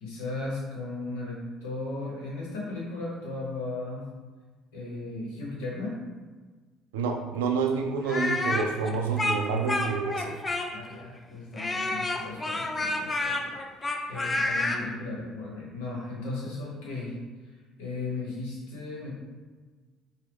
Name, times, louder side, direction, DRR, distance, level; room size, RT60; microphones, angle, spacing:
voice 1, 0.0-4.1 4.7-6.0 10.7-13.5 14.1-17.2 17.8-19.1, left 2 dB, 85° left, -4 dB, 1.1 m, -36 dB
voice 2, 6.9-10.4, right 5 dB, 90° right, 4 dB, 0.3 m, -28 dB
Speech, 8.0-10.9 11.6-14.8, left 2 dB, 30° left, 0.5 m, -29 dB
4.6 x 2.2 x 3.5 m, 1.4 s
hypercardioid pair, 65°, 0 cm